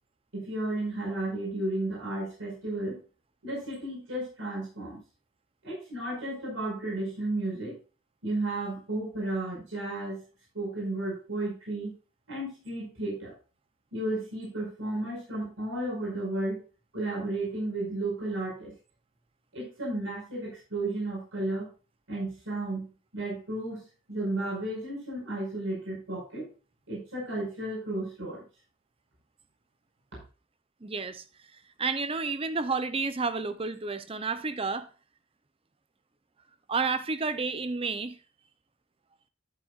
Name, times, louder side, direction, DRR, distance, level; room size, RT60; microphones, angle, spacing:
voice 1, 0.3-3.0 3.4-5.0 5.6-7.8 8.2-10.2 10.5-11.9 12.3-13.3 13.9-16.6 16.9-18.7 19.5-21.7 22.1-22.9 23.1-26.5 26.9-28.4, right 2 dB, 85° right, 5.3 m, -33 dB
voice 2, 30.8-31.2 31.5-34.9 36.7-38.2, right 4 dB, 30° right, 0.6 m, -31 dB
12.0 x 7.7 x 2.5 m
head